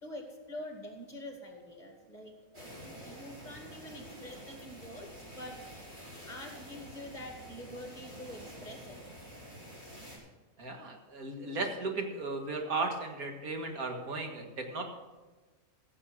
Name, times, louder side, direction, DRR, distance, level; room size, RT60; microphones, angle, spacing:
voice 1, 0.0-2.7 3.0-5.8 6.3-9.0, left 1 dB, 30° left, 3 dB, 2.1 m, -46 dB
sound 1, 2.5-10.2, equal, 35° right, 4.3 m, -48 dB
voice 2, 10.6-14.8, right 3 dB, 80° right, 3 dB, 2.2 m, -36 dB
15.5 x 7.7 x 6.1 m, 1.3 s
omnidirectional pair, 1.5 m